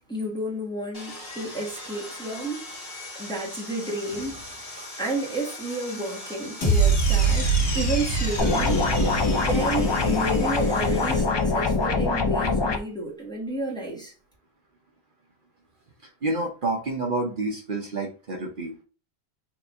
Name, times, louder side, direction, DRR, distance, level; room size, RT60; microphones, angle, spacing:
voice 1, 0.1-2.7 3.1-14.1, right 1 dB, 5° left, 1.3 m, -31 dB
Sawing, 0.9-11.2, left 1 dB, 60° left, 1.9 m, -40 dB
sound 1, 6.6-10.9, right 4 dB, 90° left, 2.0 m, -24 dB
sound 2, 8.4-12.8, left 3 dB, 40° left, 0.4 m, -23 dB
voice 2, 16.2-18.8, right 2 dB, 55° right, 1.0 m, -28 dB
4.1 x 2.7 x 3.4 m
omnidirectional pair, 1.1 m